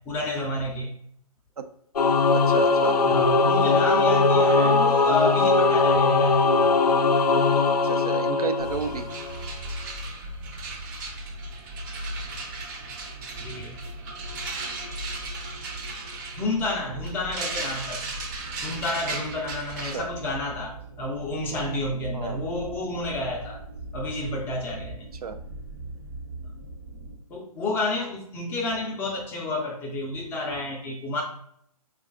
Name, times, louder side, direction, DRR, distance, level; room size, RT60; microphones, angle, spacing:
voice 1, 0.1-0.9 3.1-6.5 13.4-13.8 16.4-18.1 18.6-23.6 23.9-25.1 27.3-31.2, left 2 dB, 10° left, -1 dB, 0.4 m, -30 dB
Singing / Musical instrument, 2.0-9.4, left 3 dB, 85° left, 0.4 m, -20 dB
voice 2, 2.3-3.3 7.6-9.1 19.8-20.1 22.1-22.4 25.1-25.4, right 6 dB, 75° right, 7 dB, 0.5 m, -33 dB
sound 1, 8.4-8.5 8.7-20.0, right 3 dB, 30° right, 0.6 m, -37 dB
sound 2, 8.6-27.2, equal, 50° right, 1.0 m, -40 dB
4.8 x 2.4 x 3.6 m, 0.68 s
figure-of-eight pair, 135°, 20 cm